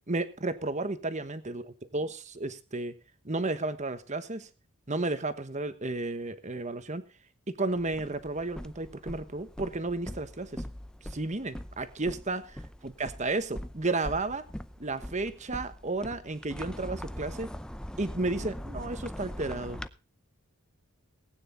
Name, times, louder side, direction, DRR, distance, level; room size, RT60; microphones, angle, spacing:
voice 1, 0.1-2.9 3.2-4.5 4.9-7.0 7.5-10.6 11.1-14.4 14.8-17.5 18.0-19.8, right 2 dB, 30° right, 11 dB, 1.2 m, -33 dB
sound 1, 7.7-19.9, equal, 5° left, 0.5 m, -42 dB
19.0 x 9.5 x 4.0 m, 0.33 s
head